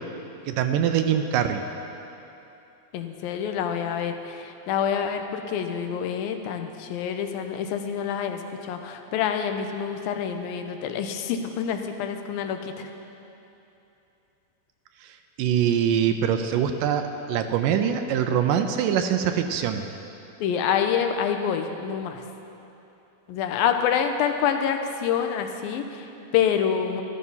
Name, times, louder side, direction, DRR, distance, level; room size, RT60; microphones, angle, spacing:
voice 1, 0.5-1.6 15.4-17.0 17.3-19.9, right 9 dB, 80° right, 7 dB, 2.1 m, -23 dB
voice 2, 2.9-12.9 20.4-22.2 23.3-27.0, left 8 dB, 90° left, 6 dB, 2.6 m, -27 dB
13.5 x 13.0 x 5.6 m, 2.9 s
omnidirectional pair, 4.1 m